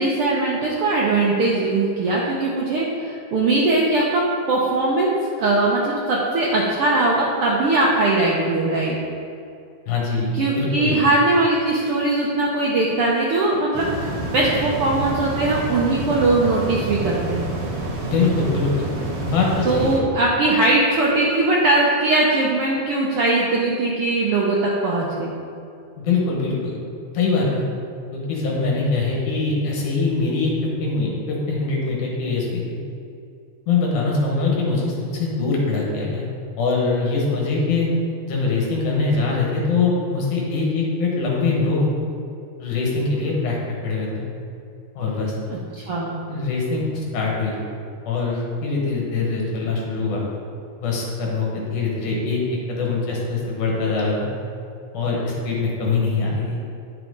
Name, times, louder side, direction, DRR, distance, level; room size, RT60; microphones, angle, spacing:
voice 1, 0.0-4.2 4.5-5.1 5.4-9.0 10.3-17.5 19.6-25.3 45.5-46.2, right 2 dB, 75° right, -4 dB, 1.3 m, -20 dB
voice 2, 9.9-10.9 18.0-18.8 19.2-20.0 26.0-26.8 27.1-27.6 28.1-30.5 30.8-32.8 33.7-36.3 36.6-37.9 38.3-41.8 42.6-43.6 43.8-44.2 45.0-45.3 46.3-47.6 48.1-50.2 50.8-54.3 54.9-56.6, left 3 dB, 80° left, -2 dB, 2.9 m, -23 dB
sound 1, 13.7-20.0, right 1 dB, 55° right, 1.7 m, -28 dB
9.5 x 5.9 x 3.9 m, 2.6 s
omnidirectional pair, 3.6 m